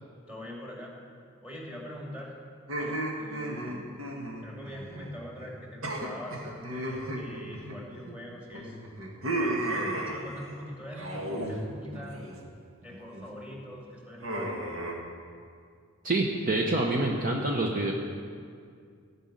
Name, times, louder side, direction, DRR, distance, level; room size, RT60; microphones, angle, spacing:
voice 1, 0.3-0.9 1.4-2.4 2.8-3.8 4.4-8.8 9.4-12.3 12.8-14.9, equal, 5° right, -3 dB, 2.5 m, -43 dB
sound 1, 2.7-5.1 5.4-5.5 5.8-8.2 8.5-10.5 10.9-11.6 11.9-12.4 12.8-13.3 14.2-14.9, right 1 dB, 85° right, 1.8 m, -34 dB
voice 2, 16.0-17.9, right 2 dB, 40° right, 0 dB, 0.9 m, -27 dB
16.0 x 5.4 x 9.0 m, 2.2 s
head